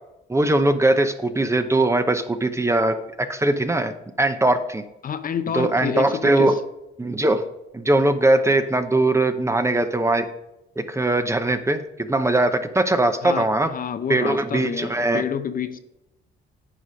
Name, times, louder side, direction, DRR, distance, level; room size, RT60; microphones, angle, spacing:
voice 1, 0.3-3.9 4.2-4.8 5.5-6.6 7.0-7.4 7.7-10.3 10.9-13.7 14.1-15.2, right 2 dB, 15° right, 9 dB, 0.7 m, -20 dB
voice 2, 5.0-6.6 13.2-15.8, left 7 dB, 45° left, 10 dB, 0.7 m, -28 dB
9.8 x 4.9 x 5.0 m, 0.90 s
cardioid pair, 90°, 20 cm